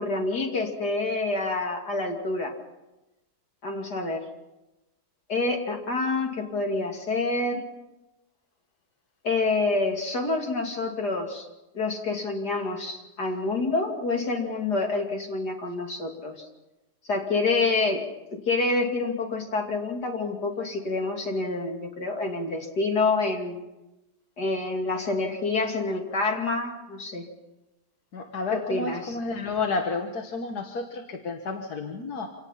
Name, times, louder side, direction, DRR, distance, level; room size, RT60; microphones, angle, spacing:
voice 1, 0.0-2.5 3.6-4.2 5.3-7.6 9.2-11.5 11.7-16.5 17.1-18.0 18.5-23.6 24.4-27.3 28.5-29.2, left 3 dB, 90° left, 2 dB, 3.3 m, -27 dB
voice 2, 28.1-32.3, left 4 dB, 75° left, 3 dB, 2.0 m, -31 dB
26.5 x 18.5 x 5.8 m, 0.99 s
omnidirectional pair, 1.7 m